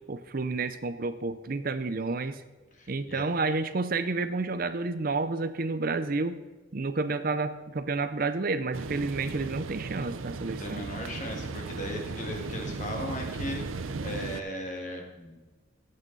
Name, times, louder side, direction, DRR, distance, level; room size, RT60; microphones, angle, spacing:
voice 1, 0.1-2.4 2.9-6.4 6.7-10.9, right 3 dB, 45° right, 11 dB, 0.6 m, -30 dB
voice 2, 2.7-3.3 10.5-15.4, equal, 35° left, 2 dB, 2.0 m, -37 dB
sound 1, 8.7-14.4, right 3 dB, 85° right, 0.7 m, -36 dB
16.0 x 8.7 x 4.0 m, 1.3 s
head